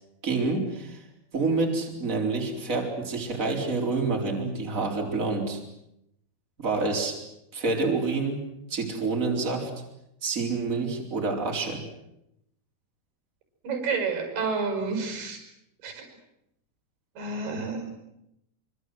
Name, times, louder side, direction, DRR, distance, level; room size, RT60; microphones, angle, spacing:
voice 1, 0.2-1.0 1.3-5.6 6.6-7.2 7.5-8.4 8.7-9.7 10.2-11.8, right 3 dB, 20° right, 1 dB, 4.2 m, -27 dB
voice 2, 13.6-15.4 15.8-16.1 17.2-17.9, right 4 dB, 70° right, 6 dB, 7.5 m, -30 dB
26.0 x 25.0 x 7.9 m, 0.83 s
omnidirectional pair, 4.7 m